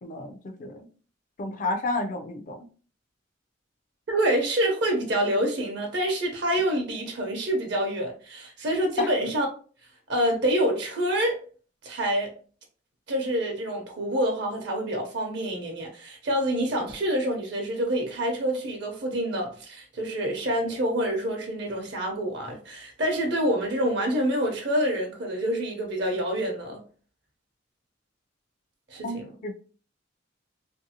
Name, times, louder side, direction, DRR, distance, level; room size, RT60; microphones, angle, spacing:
voice 1, 0.0-0.9 1.4-2.7 9.0-9.2 29.0-29.5, left 2 dB, 45° left, 0.4 m, -31 dB
voice 2, 4.1-9.5 10.1-11.4 11.8-12.3 13.1-26.8 28.9-29.2, right 1 dB, 60° right, 0.6 m, -27 dB
2.7 x 2.6 x 2.7 m
head